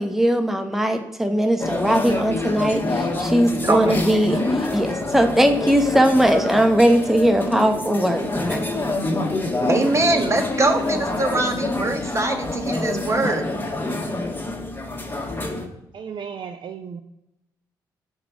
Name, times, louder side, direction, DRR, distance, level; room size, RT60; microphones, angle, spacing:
voice 1, 0.0-8.6, equal, 5° right, 6 dB, 0.9 m, -19 dB
sound 1, 1.6-15.7, left 2 dB, 20° left, 1.6 m, -26 dB
voice 2, 3.6-4.0 9.6-13.5, right 2 dB, 30° right, 4 dB, 1.4 m, -22 dB
voice 3, 15.9-17.0, right 7 dB, 50° right, 6 dB, 0.5 m, -34 dB
4.9 x 4.6 x 6.0 m, 0.87 s
hypercardioid pair, 40°, 10 cm